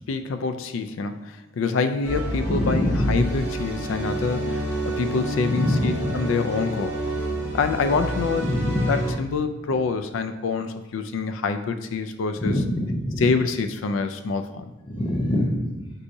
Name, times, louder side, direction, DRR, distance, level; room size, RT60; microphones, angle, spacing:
voice 1, 0.1-6.9 7.5-8.5 8.9-12.5 13.2-14.7, left 4 dB, 80° left, 8 dB, 0.4 m, -26 dB
sound 1, 2.0-9.1, right 1 dB, 10° right, 1.4 m, -28 dB
voice 2, 2.5-3.1 5.5-6.1 8.4-9.0 12.4-13.3 14.8-15.9, left 1 dB, 25° left, -1 dB, 0.7 m, -25 dB
4.6 x 4.0 x 2.7 m, 1.0 s
head